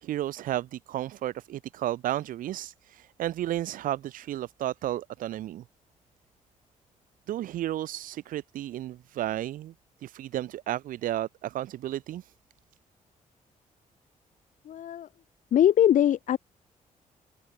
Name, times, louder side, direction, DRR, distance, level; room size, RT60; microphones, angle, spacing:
voice 1, 0.0-5.6 7.3-9.7 10.0-12.3, right 13 dB, 85° right, 0.9 m, -33 dB
voice 2, 14.7-15.1 15.5-16.4, left 10 dB, 65° left, 1.6 m, -21 dB
cardioid pair, 125°, 14 cm